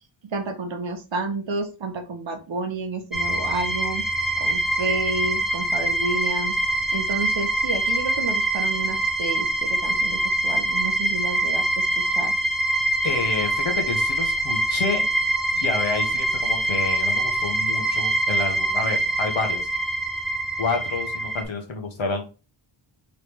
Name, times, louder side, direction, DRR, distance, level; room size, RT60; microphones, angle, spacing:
voice 1, 0.2-4.0 4.4-12.3, right 3 dB, 65° right, 5 dB, 1.0 m, -30 dB
sound 1, 3.1-21.4, right 1 dB, ahead, 0.6 m, -24 dB
voice 2, 13.0-15.0 15.5-19.6 20.6-22.3, left 4 dB, 75° left, 2 dB, 1.3 m, -29 dB
3.9 x 3.2 x 3.3 m, 0.31 s
wide cardioid pair, 110°, 48 cm